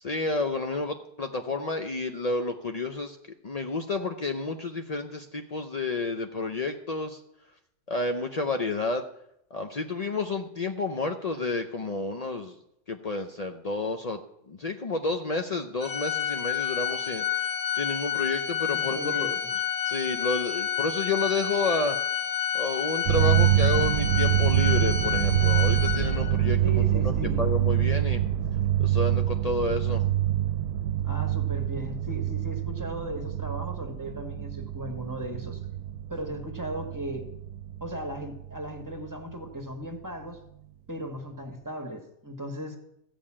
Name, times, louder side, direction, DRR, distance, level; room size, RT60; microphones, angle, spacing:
voice 1, 0.0-3.2 3.4-7.2 7.9-9.0 9.5-12.6 12.9-14.2 14.5-19.4 19.9-22.0 22.5-28.2 28.8-30.0, left 3 dB, 80° left, 5 dB, 0.3 m, -30 dB
Organ, 15.8-26.4, left 9 dB, 45° left, 1.4 m, -29 dB
voice 2, 18.7-19.3 26.6-27.5 31.0-35.6 36.1-37.3 37.8-40.4 40.9-42.8, right 1 dB, 10° right, 5 dB, 1.4 m, -37 dB
sound 1, 23.1-39.1, right 12 dB, 75° right, 1.2 m, -26 dB
14.0 x 5.3 x 8.7 m, 0.78 s
omnidirectional pair, 1.8 m